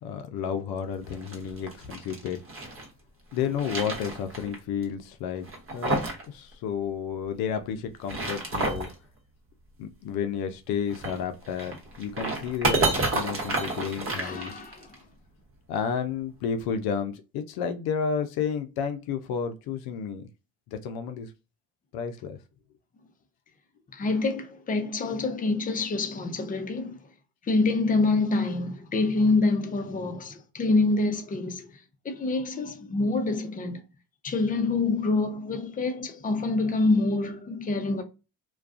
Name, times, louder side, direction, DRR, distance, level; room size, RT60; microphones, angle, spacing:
voice 1, 0.0-2.4 3.3-5.5 5.7-6.0 6.3-8.9 9.8-14.5 15.7-20.3 20.7-21.3 21.9-22.4, left 7 dB, 65° left, 0.5 m, -31 dB
sound 1, 1.0-2.9 3.3-4.6 4.8-4.9 5.4-6.3 6.5-6.6 7.9-8.9 10.9-14.9, right 2 dB, 35° right, 0.9 m, -30 dB
voice 2, 14.2-15.0 23.9-27.0 27.4-33.8 34.2-38.0, left 3 dB, 20° left, 0.6 m, -26 dB
2.3 x 2.2 x 2.4 m
supercardioid pair, 70°, 40 cm